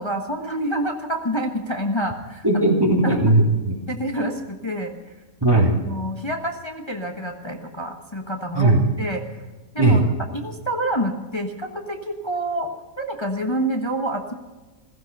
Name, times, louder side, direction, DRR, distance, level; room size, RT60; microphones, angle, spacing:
voice 1, 0.0-2.6 3.0-3.3 3.9-5.1 5.8-9.5 9.7-10.0 10.3-12.7 13.0-14.3, right 1 dB, 20° left, 2 dB, 1.2 m, -27 dB
voice 2, 2.4-3.7 4.2-4.3 5.4-5.7 8.5-8.8 9.8-10.0, right 2 dB, 15° right, -1 dB, 3.3 m, -17 dB
16.0 x 15.0 x 5.4 m, 1.3 s
omnidirectional pair, 1.4 m